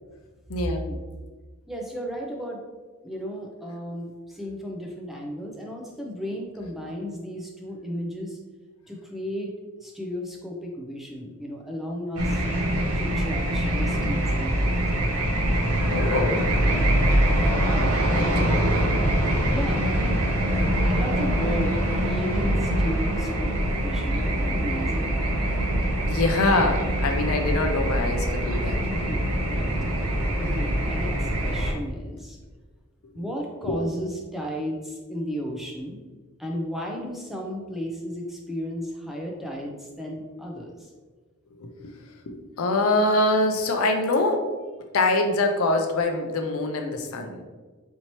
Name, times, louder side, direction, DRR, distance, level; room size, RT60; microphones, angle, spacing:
voice 1, 0.6-1.0 1.7-2.6 3.0-8.4 8.9-9.5 9.8-12.4 13.0-14.7 18.0-18.5 19.5-20.3 20.6-25.2 28.9-29.2 29.5-29.7 30.3-32.4 33.1-36.0 36.4-40.9, equal, ahead, -1 dB, 0.4 m, -34 dB
sound 1, 12.2-31.7, right 1 dB, 85° right, 0.7 m, -24 dB
voice 2, 15.9-16.4 18.1-18.5 26.0-28.8 33.6-33.7 41.6-41.9 42.3-44.4 44.9-47.4, left 2 dB, 75° left, 4 dB, 0.5 m, -24 dB
4.4 x 2.8 x 2.9 m, 1.3 s
head